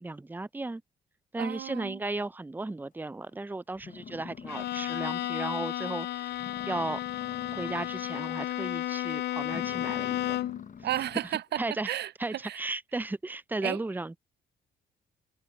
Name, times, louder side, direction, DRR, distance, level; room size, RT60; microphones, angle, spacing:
voice 1, 0.0-0.8 1.3-6.3 6.7-7.0 7.5-10.4 11.6-11.9 12.2-14.2, right 2 dB, 10° right, 0.6 m, -35 dB
voice 2, 1.4-2.0 10.8-12.6 13.6-13.8, right 12 dB, 60° right, 0.4 m, -33 dB
sound 1, 3.3-3.4 3.8-5.2 5.5-5.6 6.0-6.1 6.3-8.3 8.6-8.9 9.4-11.4, left 6 dB, 40° left, 0.9 m, -44 dB
Bowed string instrument, 4.5-10.7, left 13 dB, 60° left, 0.5 m, -33 dB
supercardioid pair, 60°, 20 cm